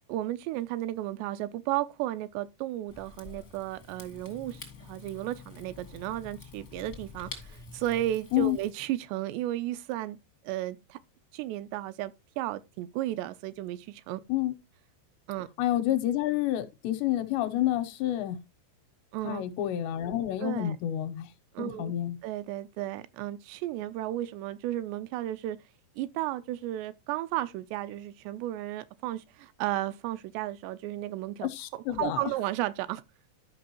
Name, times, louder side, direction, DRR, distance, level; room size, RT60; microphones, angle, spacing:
voice 1, 0.1-10.2 10.4-11.0 11.3-14.2 15.3-15.5 19.1-19.4 20.4-20.8 21.5-21.9 22.2-25.6 26.0-33.0, right 14 dB, 85° right, 2.7 m, -34 dB
Rain / Fire, 2.9-8.7, left 4 dB, 45° left, 0.9 m, -47 dB
voice 2, 15.6-18.4 19.2-21.3 21.6-22.2 31.4-32.2, left 13 dB, 80° left, 3.0 m, -29 dB
12.0 x 5.4 x 2.9 m
omnidirectional pair, 5.0 m